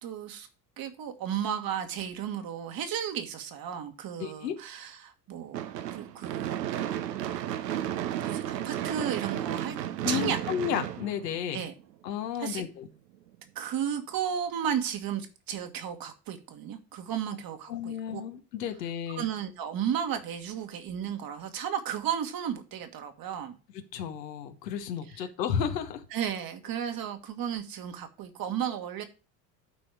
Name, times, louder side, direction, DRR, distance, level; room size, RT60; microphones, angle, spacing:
voice 1, 0.0-0.5 0.8-5.6 5.9-6.5 8.2-9.8 10.1-10.4 11.5-11.7 12.4-12.6 13.5-18.2 19.1-23.6 26.1-29.0, right 9 dB, 45° right, 1.6 m, -34 dB
voice 2, 4.2-4.5 10.0-11.7 12.0-12.9 17.7-19.3 23.9-26.0, left 8 dB, 75° left, 1.2 m, -32 dB
Gunshot gunfire / Fireworks, 5.5-11.8, right 11 dB, 80° right, 0.8 m, -33 dB
11.5 x 4.3 x 4.8 m
hypercardioid pair, 70°, 49 cm